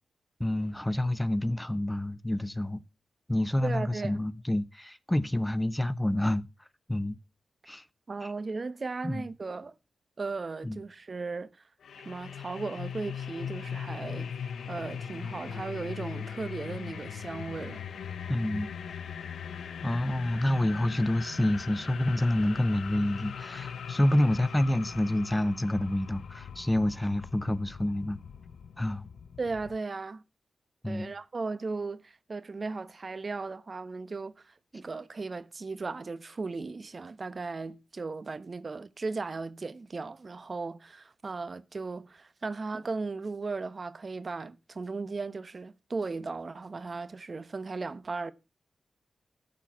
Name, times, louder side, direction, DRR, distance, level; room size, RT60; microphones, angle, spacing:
voice 1, 0.4-2.8 3.3-7.2 7.7-7.9 8.2-8.3 9.0-9.3 10.6-10.8 18.3-18.7 19.8-28.2 28.8-29.1 30.8-31.1, left 1 dB, 15° left, 0.8 m, -28 dB
voice 2, 3.6-4.2 8.1-9.7 10.2-11.5 12.0-17.9 29.4-30.2 30.9-48.3, right 3 dB, 50° right, 1.0 m, -36 dB
sound 1, 11.8-29.8, left 7 dB, 80° left, 0.6 m, -40 dB
13.0 x 4.6 x 7.3 m
supercardioid pair, 40°, 0 cm